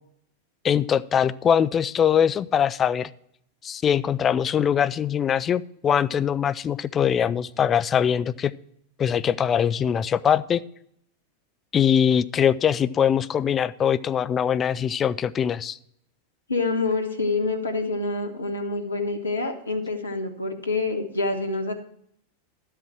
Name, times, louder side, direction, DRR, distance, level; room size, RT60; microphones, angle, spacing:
voice 1, 0.6-3.1 3.6-8.5 9.0-10.6 11.7-15.8, left 8 dB, 25° left, 15 dB, 0.4 m, -22 dB
voice 2, 16.5-21.7, left 3 dB, 75° left, 5 dB, 1.4 m, -27 dB
12.0 x 8.1 x 4.5 m, 0.71 s
figure-of-eight pair, 90°, 0 cm